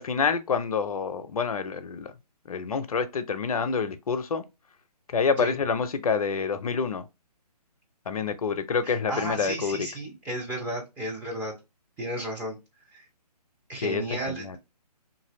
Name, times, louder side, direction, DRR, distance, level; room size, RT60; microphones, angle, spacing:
voice 1, 0.0-2.1 2.5-4.4 5.1-7.0 8.1-9.9 13.8-14.6, left 5 dB, 60° left, 0.5 m, -27 dB
voice 2, 8.8-11.5 12.0-12.6 12.9-13.0 13.7-14.6, right 1 dB, 10° right, 0.5 m, -33 dB
2.8 x 2.6 x 2.8 m
figure-of-eight pair, 140°, 21 cm